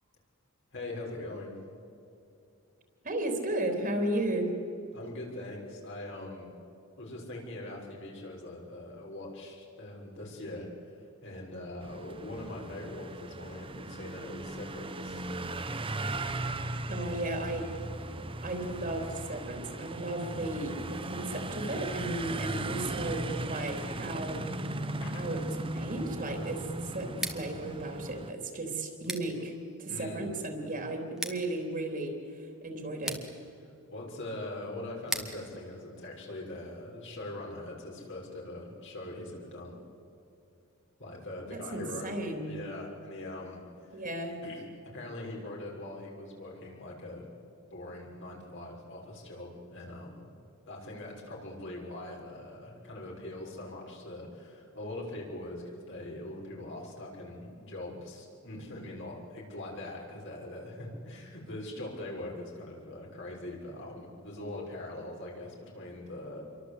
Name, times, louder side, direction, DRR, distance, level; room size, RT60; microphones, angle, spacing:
voice 1, 0.7-1.5 4.9-6.5 7.0-15.3 22.3-22.7 25.0-25.3 29.9-30.3 33.9-39.7 41.0-42.1 42.4-43.6 43.9-44.0 44.4-44.7 44.9-47.2 47.7-50.3 50.7-66.4, left 1 dB, 60° left, -1 dB, 6.2 m, -42 dB
voice 2, 3.0-4.5 16.9-17.7 18.4-24.6 25.1-29.5 29.8-33.2 41.5-42.6 43.9-44.4, right 1 dB, 40° right, 4 dB, 3.6 m, -35 dB
sound 1, 11.8-28.3, right 2 dB, 25° right, 1.0 m, -37 dB
Scissors, 27.1-36.9, right 1 dB, ahead, 2.1 m, -44 dB
28.5 x 23.5 x 8.4 m, 2.7 s
head